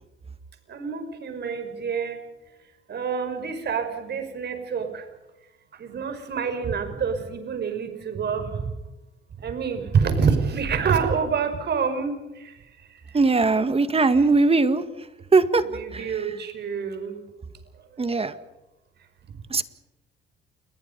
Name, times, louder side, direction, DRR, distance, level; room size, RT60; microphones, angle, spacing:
voice 1, 0.7-2.2 2.9-5.0 5.8-8.7 9.4-12.2 15.7-17.2, right 6 dB, 55° right, 7 dB, 5.5 m, -27 dB
voice 2, 13.1-14.8 15.3-15.6 15.9-16.1 18.0-18.3 19.5-19.6, right 3 dB, 30° right, 11 dB, 1.9 m, -20 dB
29.0 x 22.0 x 5.5 m, 1.0 s
cardioid pair, 90°, 20 cm